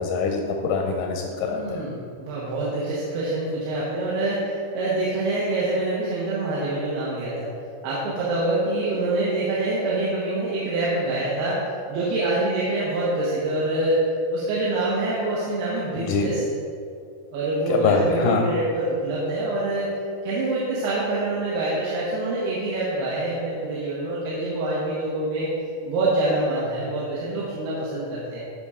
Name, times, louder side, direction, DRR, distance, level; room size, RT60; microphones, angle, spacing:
voice 1, 0.0-1.8 16.0-16.4 17.7-18.5, left 5 dB, 80° left, 1 dB, 1.9 m, -24 dB
voice 2, 1.4-7.5 7.8-16.4 17.3-19.9 20.2-25.5 25.9-28.4, right 2 dB, 85° right, -7 dB, 3.0 m, -25 dB
12.0 x 4.2 x 3.6 m, 2.3 s
omnidirectional pair, 4.4 m